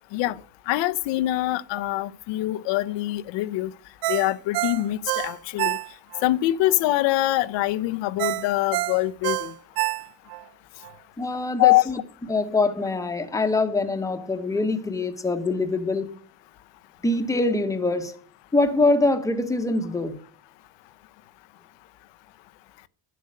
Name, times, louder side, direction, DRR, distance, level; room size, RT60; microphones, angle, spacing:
voice 1, 0.7-3.7 4.1-5.8 6.2-9.4 11.6-11.8, left 16 dB, 80° left, 0.7 m, -23 dB
Ringtone, 4.0-6.3 6.7-6.8 8.2-10.4 10.8-10.9, right 19 dB, 60° right, 0.5 m, -27 dB
voice 2, 11.2-12.0 12.3-16.2 17.0-18.1 18.5-20.2, left 2 dB, 5° left, 1.0 m, -24 dB
12.0 x 7.7 x 6.4 m
cardioid pair, 170°, 44 cm